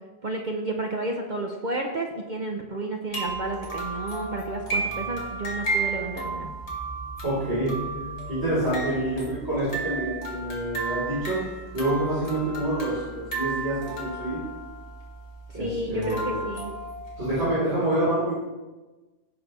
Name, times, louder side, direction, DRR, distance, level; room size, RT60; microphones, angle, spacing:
voice 1, 0.2-6.5 15.5-16.7, right 2 dB, 45° right, 2 dB, 0.9 m, -31 dB
sound 1, 3.1-17.4, right 3 dB, 65° left, 2.5 m, -33 dB
voice 2, 7.2-7.7 8.3-11.4 11.7-14.4 15.5-16.4 17.2-18.3, right 1 dB, 65° right, -10 dB, 4.4 m, -27 dB
16.5 x 6.3 x 3.3 m, 1.2 s
omnidirectional pair, 1.2 m